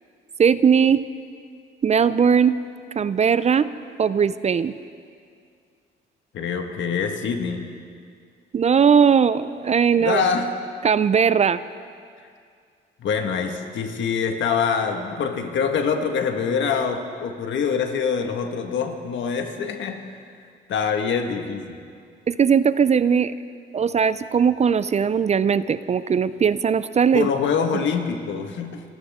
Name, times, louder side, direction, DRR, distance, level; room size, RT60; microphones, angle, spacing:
voice 1, 0.4-1.0 1.8-2.6 3.0-3.7 4.0-4.8 8.5-10.2 10.8-11.6 22.3-23.3 23.7-27.3, right 7 dB, 35° right, 15 dB, 0.4 m, -19 dB
voice 2, 6.3-7.6 10.0-10.5 13.0-20.2 20.7-21.7 27.1-28.8, left 6 dB, 70° left, 5 dB, 1.6 m, -25 dB
27.0 x 14.0 x 3.6 m, 2.2 s
cardioid pair, 90°, 20 cm